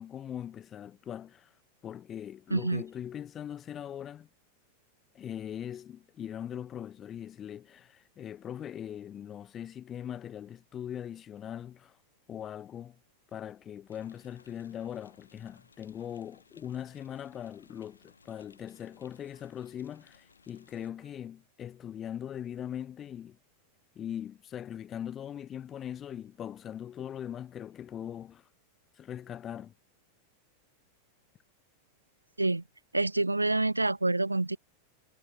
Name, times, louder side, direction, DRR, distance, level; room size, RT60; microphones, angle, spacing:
voice 1, 0.0-1.5 1.8-4.3 5.1-12.0 12.3-13.0 13.3-23.4 23.9-28.4 29.0-29.7, left 9 dB, 25° left, 3.0 m, -41 dB
voice 2, 2.5-2.8 32.4-32.6 32.9-34.6, right 2 dB, 85° right, 0.4 m, -27 dB
sound 1, 13.9-20.9, left 5 dB, 75° left, 6.0 m, -61 dB
figure-of-eight pair, 90°, 0 cm